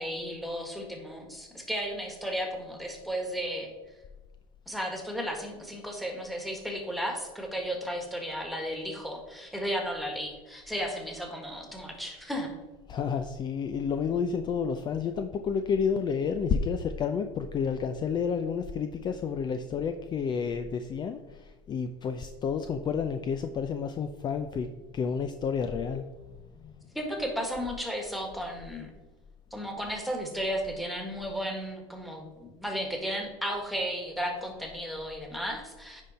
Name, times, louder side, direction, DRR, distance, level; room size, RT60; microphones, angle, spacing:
voice 1, 0.0-3.7 4.7-12.5 26.9-28.9 29.5-36.0, equal, ahead, 2 dB, 1.7 m, -34 dB
voice 2, 12.9-26.2 26.6-26.8, left 6 dB, 35° left, 7 dB, 0.5 m, -30 dB
9.8 x 3.9 x 4.2 m, 1.2 s
supercardioid pair, 105°, 13 cm